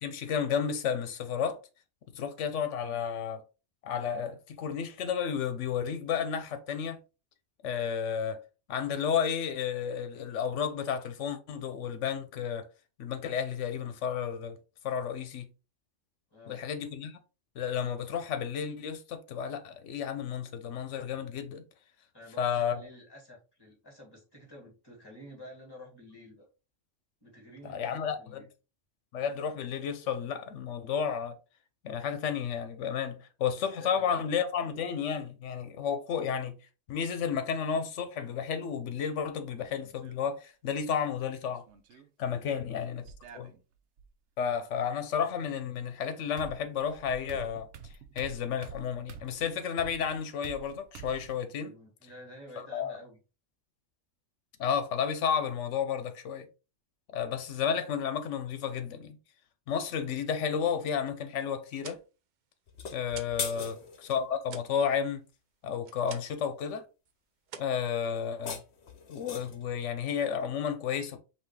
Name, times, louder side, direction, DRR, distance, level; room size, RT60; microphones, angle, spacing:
voice 1, 0.0-1.6 2.1-3.4 3.8-7.0 7.6-8.4 8.7-12.7 13.0-14.6 14.8-15.5 16.5-17.2 17.6-21.6 22.4-22.8 27.6-28.4 29.1-31.4 31.8-36.6 36.9-41.6 42.2-43.0 43.3-43.5 44.4-51.7 52.7-52.9 54.6-56.5 57.1-59.2 59.7-62.0 62.9-65.2 65.6-66.8 67.6-68.6 69.1-71.2, left 7 dB, 85° left, 1.0 m, -32 dB
voice 2, 16.3-16.7 22.1-26.5 27.2-28.5 33.6-34.3 42.5-43.0 51.6-53.2 63.5-63.8, left 1 dB, 20° left, 2.2 m, -51 dB
sound 1, 39.6-40.2 41.5-42.1 43.0-44.1 45.8-45.9 46.4-51.4, right 6 dB, 75° right, 0.9 m, -48 dB
sound 2, 61.6-63.5 63.8-66.5 66.8-67.1 67.4-68.5, right 7 dB, 55° right, 0.5 m, -49 dB
sound 3, 62.7-64.2 68.2-69.7, left 6 dB, 70° left, 1.1 m, -39 dB
5.6 x 2.7 x 3.2 m
omnidirectional pair, 1.2 m